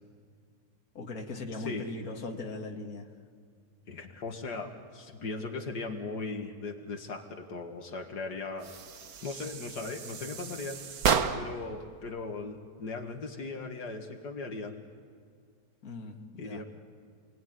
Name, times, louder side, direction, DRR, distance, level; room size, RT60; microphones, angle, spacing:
voice 1, 0.9-3.1 15.8-16.6, left 3 dB, 60° left, 2 dB, 2.4 m, -39 dB
voice 2, 3.9-8.7 9.2-10.8 11.3-14.7 16.4-16.6, left 3 dB, 90° left, 3 dB, 2.5 m, -38 dB
sound 1, 8.6-11.7, right 6 dB, 65° right, 1.6 m, -32 dB
29.5 x 20.0 x 9.4 m, 2.1 s
omnidirectional pair, 1.7 m